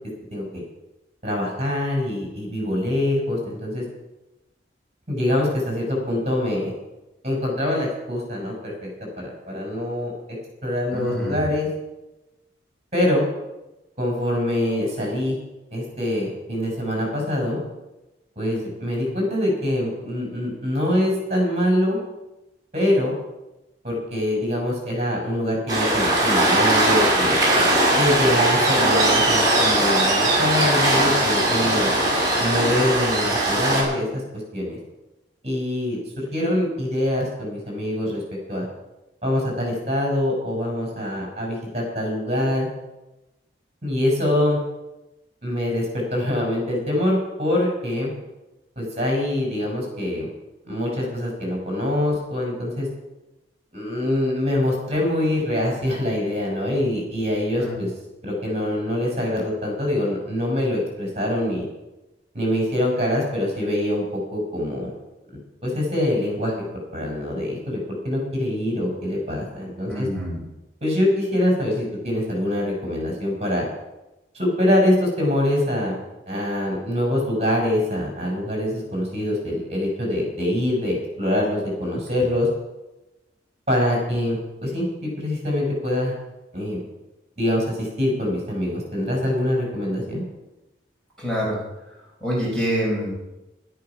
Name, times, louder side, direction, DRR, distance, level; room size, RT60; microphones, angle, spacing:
voice 1, 0.3-0.6 1.2-3.8 5.1-6.7 7.2-8.9 9.2-10.1 10.6-11.7 12.9-13.2 14.0-15.4 15.7-17.6 18.4-22.0 22.7-23.1 23.8-27.4 28.0-31.9 32.4-34.8 35.4-38.2 38.5-38.7 39.2-42.7 43.8-44.6 45.4-48.1 48.8-50.3 50.6-52.9 53.7-57.9 58.2-61.7 62.3-64.9 65.3-66.5 66.9-70.1 70.8-73.6 74.3-76.0 76.3-82.5 83.7-86.1 86.5-86.8 87.4-90.2, left 1 dB, 35° right, -1 dB, 5.7 m, -24 dB
voice 2, 10.9-11.5 57.6-57.8 69.9-70.4 91.2-91.6 92.2-93.2, equal, 5° left, -5 dB, 4.6 m, -26 dB
Waves surf, 25.7-33.8, right 1 dB, 20° right, 5.3 m, -19 dB
13.0 x 12.0 x 6.0 m, 1.0 s
head